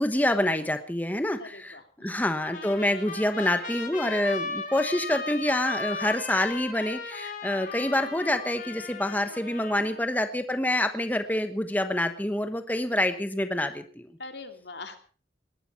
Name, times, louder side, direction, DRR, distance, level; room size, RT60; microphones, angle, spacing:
voice 1, 0.0-14.1, left 1 dB, 10° left, 8 dB, 1.1 m, -27 dB
voice 2, 1.4-2.2 14.2-15.0, left 3 dB, 80° left, 6 dB, 2.7 m, -43 dB
Trumpet, 2.4-10.1, left 4 dB, 45° left, 3.1 m, -37 dB
19.5 x 12.0 x 5.5 m, 0.39 s
head